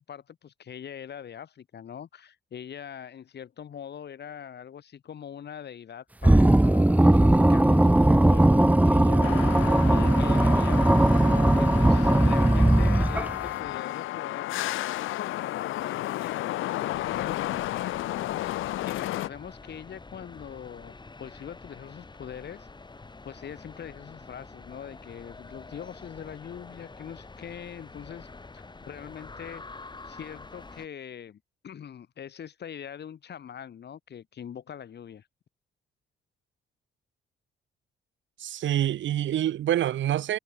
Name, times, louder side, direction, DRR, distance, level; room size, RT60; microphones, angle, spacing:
voice 1, 0.0-10.8 11.3-14.6 15.1-22.7 23.2-28.3 28.5-29.6 30.0-35.3, left 8 dB, 55° left, 6.1 m, -42 dB
sound 1, 6.2-13.5, right 1 dB, 5° right, 1.6 m, -19 dB
sound 2, 9.2-19.3, left 15 dB, 85° left, 1.3 m, -32 dB
sound 3, 16.9-30.9, left 3 dB, 20° left, 5.4 m, -47 dB
voice 2, 38.4-40.4, right 11 dB, 75° right, 3.3 m, -26 dB
cardioid pair, 90°, 20 cm